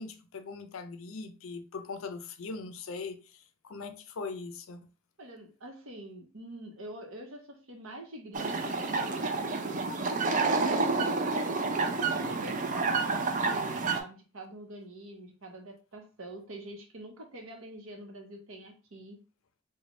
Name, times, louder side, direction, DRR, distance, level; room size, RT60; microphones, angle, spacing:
voice 1, 0.0-3.2 3.6-4.8 10.9-11.2, left 4 dB, 70° left, 0.5 m, -40 dB
voice 2, 5.2-19.2, right 1 dB, 70° right, 0.9 m, -46 dB
sound 1, 8.3-14.0, right 3 dB, 35° right, 0.4 m, -29 dB
3.3 x 2.2 x 3.8 m
head